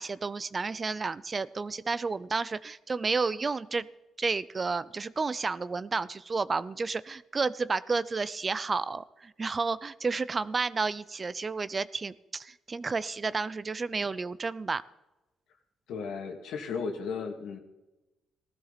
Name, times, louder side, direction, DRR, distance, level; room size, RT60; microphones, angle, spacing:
voice 1, 0.0-3.9 4.2-14.8, right 4 dB, 30° right, 17 dB, 0.5 m, -31 dB
voice 2, 15.9-17.6, left 5 dB, 80° left, 4 dB, 2.1 m, -35 dB
16.5 x 13.5 x 4.1 m, 1.0 s
cardioid pair, 90°, 0 cm